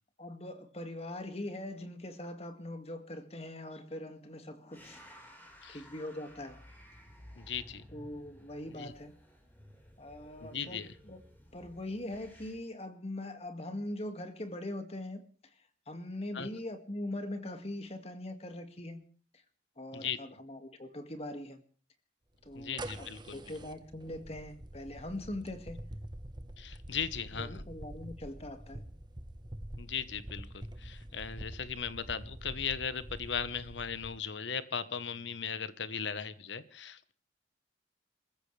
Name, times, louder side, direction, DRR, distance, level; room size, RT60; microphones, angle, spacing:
voice 1, 0.2-5.1 5.7-6.6 7.9-9.2 10.0-11.2 11.5-15.5 15.9-19.0 19.3-19.4 19.8-21.6 22.4-25.8 27.3-28.9, left 1 dB, 35° left, 8 dB, 2.1 m, -42 dB
sound 1, 4.7-12.5, equal, 10° left, 4.7 m, -55 dB
voice 2, 7.4-7.8 8.8-8.9 10.4-10.9 16.3-16.5 19.9-20.2 22.5-23.4 26.6-27.6 29.8-37.1, left 7 dB, 75° left, 13 dB, 1.2 m, -38 dB
sound 2, 22.4-34.2, right 1 dB, 25° right, 1.2 m, -46 dB
28.0 x 15.0 x 3.4 m, 0.41 s
head